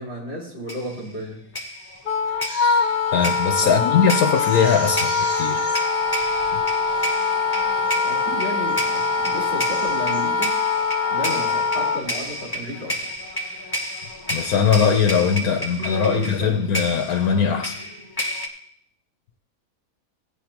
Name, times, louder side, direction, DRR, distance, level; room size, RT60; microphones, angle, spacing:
voice 1, 0.0-1.4 3.6-3.9 8.0-10.6 11.1-13.1 15.4-15.5 15.8-16.7, equal, 40° right, -7 dB, 4.2 m, -33 dB
sound 1, 0.7-1.1 1.5-18.5, equal, 20° left, 0.8 m, -31 dB
Wind instrument woodwind instrument, 2.0-12.0, left 4 dB, 50° left, 0.8 m, -23 dB
Crying sobbing, 2.3-3.3 3.8-3.9 4.3-5.8 6.5-6.6 6.9-7.3 7.8-8.2 8.6-9.1 9.5-10.2 10.7-11.0, equal, 10° right, 4.5 m, -39 dB
voice 2, 3.1-5.6 6.5-6.6 14.3-17.8, left 6 dB, 75° left, 5 dB, 1.2 m, -20 dB
15.5 x 9.1 x 2.9 m, 0.66 s
omnidirectional pair, 1.6 m